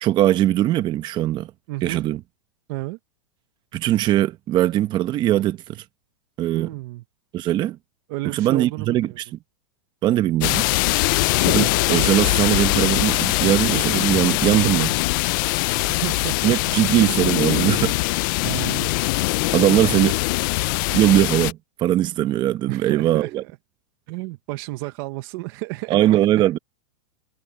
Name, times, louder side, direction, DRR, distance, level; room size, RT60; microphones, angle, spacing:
voice 1, 0.0-1.5 1.8-2.2 3.7-5.8 6.4-6.8 7.3-7.8 8.2-9.1 10.0-10.7 11.4-15.0 16.4-18.0 19.5-20.2 20.9-23.4 25.9-26.6, right 13 dB, 25° right, 1.3 m, -20 dB
voice 2, 1.7-2.0 2.7-3.0 6.5-7.0 8.1-9.2 15.8-16.6 18.4-18.9 22.7-23.3 24.1-26.0, right 20 dB, 40° right, 1.0 m, -31 dB
sound 1, 10.4-21.5, left 23 dB, 35° left, 0.4 m, -22 dB
supercardioid pair, 155°, 18 cm